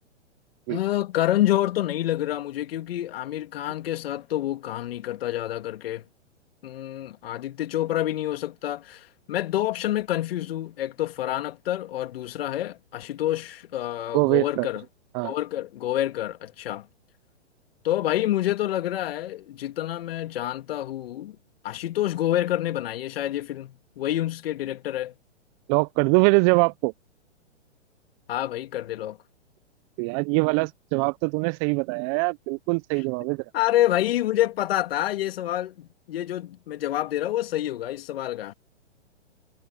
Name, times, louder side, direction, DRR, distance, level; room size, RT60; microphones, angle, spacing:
voice 1, 0.7-6.0 6.6-14.8 15.2-16.9 17.8-21.4 21.6-25.1 28.3-29.2 33.5-38.5, left 13 dB, 55° left, 2.7 m, -27 dB
voice 2, 14.1-14.7 15.1-15.3 25.7-26.9 30.0-33.4, right 31 dB, 25° right, 0.6 m, -23 dB
hypercardioid pair, 120°, 36 cm